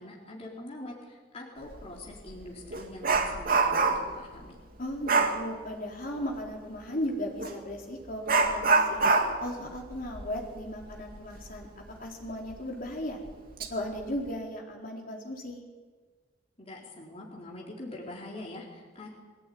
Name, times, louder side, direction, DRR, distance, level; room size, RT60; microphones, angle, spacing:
voice 1, 0.0-4.6 16.6-19.1, left 1 dB, 35° left, -3 dB, 4.1 m, -44 dB
Dog, 1.7-1.9 2.3-4.2 5.1-5.4 7.4-7.6 8.3-11.6 11.9-12.0 12.5-12.6 13.3-13.7 14.0-14.3, right 3 dB, 50° right, 2.3 m, -26 dB
voice 2, 4.8-9.0 9.4-13.2 13.7-15.6, equal, 50° left, -1 dB, 4.4 m, -36 dB
23.5 x 17.5 x 9.6 m, 1.4 s
head